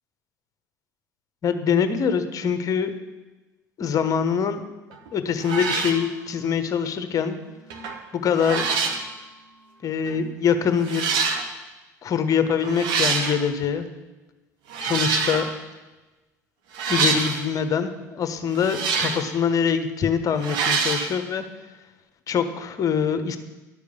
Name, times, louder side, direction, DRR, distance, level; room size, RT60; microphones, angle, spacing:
voice 1, 1.4-2.9 3.8-4.6 5.1-7.4 8.1-8.7 9.8-11.1 12.0-13.9 14.8-15.5 16.9-21.4 22.3-23.4, left 7 dB, 35° left, 9 dB, 1.1 m, -24 dB
sound 1, 4.9-5.1 5.4-6.0 7.7-8.0 8.3-9.0 10.0-10.1 10.8-11.4 12.6-13.4 14.7-15.5 16.7-17.4 18.5-19.3 20.4-21.1, right 5 dB, 55° right, 1.4 m, -25 dB
11.5 x 6.6 x 6.9 m, 1.2 s
figure-of-eight pair, 65°, 10 cm